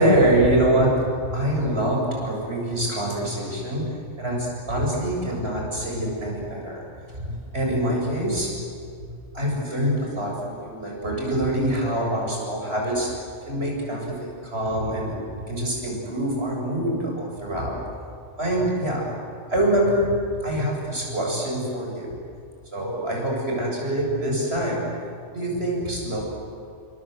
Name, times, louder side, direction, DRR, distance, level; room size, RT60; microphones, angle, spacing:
voice 1, 0.0-3.8 4.2-6.9 7.1-8.6 9.0-13.1 13.5-15.1 15.5-17.9 18.4-19.1 19.5-20.1 20.4-22.2 22.7-24.9 25.3-26.2, right 1 dB, 60° right, -1 dB, 7.7 m, -25 dB
29.5 x 25.0 x 8.0 m, 2.3 s
omnidirectional pair, 1.2 m